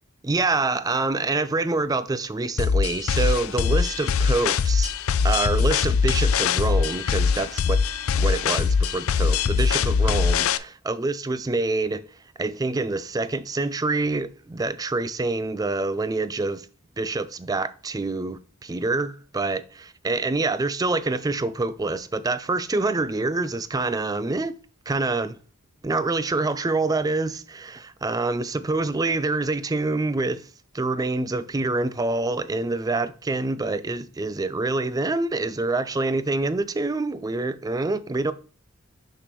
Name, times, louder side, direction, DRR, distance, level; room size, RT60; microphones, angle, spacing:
voice 1, 0.2-4.9 5.2-7.8 8.1-12.1 12.4-16.7 17.0-19.6 20.0-24.5 24.9-25.4 25.8-30.5 30.7-38.3, right 3 dB, 15° right, 0.4 m, -26 dB
sound 1, 2.6-10.6, left 5 dB, 70° left, 0.4 m, -22 dB
6.5 x 6.1 x 3.1 m
head